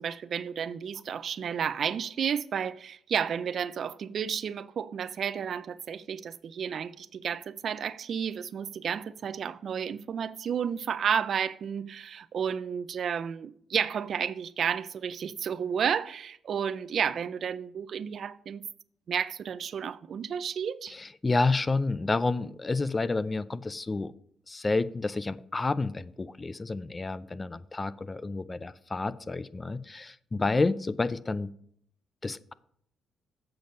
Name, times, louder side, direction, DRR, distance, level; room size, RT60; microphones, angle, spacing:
voice 1, 0.0-18.6 19.1-20.9, right 7 dB, 55° right, 0.4 m, -32 dB
voice 2, 20.9-24.1 24.5-31.5 32.2-32.5, left 3 dB, 25° left, 0.4 m, -29 dB
7.8 x 6.9 x 5.3 m
cardioid pair, 90°, 0 cm